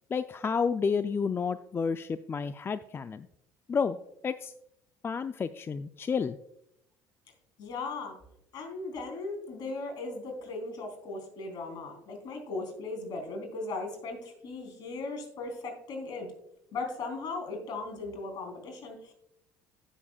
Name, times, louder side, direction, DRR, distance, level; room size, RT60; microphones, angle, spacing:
voice 1, 0.1-3.3 3.7-4.0 4.2-4.5 5.0-6.4, left 5 dB, 30° left, 12 dB, 0.4 m, -30 dB
voice 2, 7.6-8.2 8.5-16.3 16.7-19.1, left 3 dB, 55° left, 3 dB, 3.4 m, -37 dB
16.0 x 7.0 x 2.3 m, 0.80 s
hypercardioid pair, 70°, 9 cm